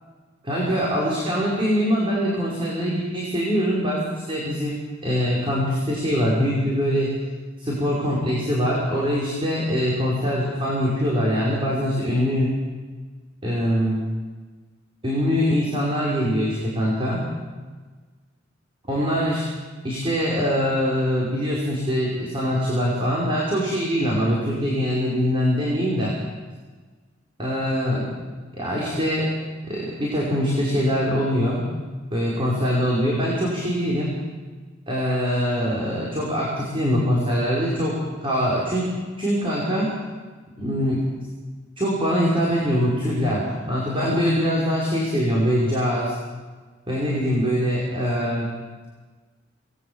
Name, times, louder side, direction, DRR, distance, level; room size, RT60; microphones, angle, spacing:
voice 1, 0.4-4.8 5.0-7.1 7.6-12.5 13.4-14.0 15.0-17.3 18.9-19.4 19.8-26.1 27.4-28.1 28.6-29.3 29.7-31.6 32.1-34.1 34.9-38.0 38.2-38.9 39.2-39.9 40.6-41.0 41.8-46.1 46.9-48.5, equal, 25° right, -5 dB, 5.6 m, -23 dB
27.0 x 20.5 x 7.4 m, 1.4 s
head